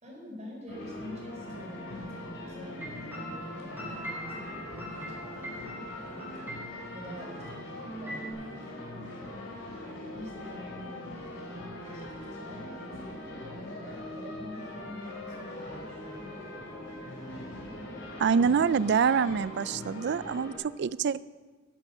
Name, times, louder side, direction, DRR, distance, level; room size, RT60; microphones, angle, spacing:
voice 1, 0.0-5.9 6.9-9.1 10.0-12.0 12.3-16.5, equal, 35° right, -1 dB, 4.3 m, -46 dB
sound 1, 0.7-20.5, left 1 dB, 70° left, 4.0 m, -41 dB
sound 2, 2.8-7.0 7.4-7.5 7.8-8.3, equal, 10° right, 4.0 m, -42 dB
voice 2, 18.2-21.2, right 6 dB, 60° right, 18 dB, 0.4 m, -26 dB
11.5 x 10.5 x 6.6 m, 1.4 s
head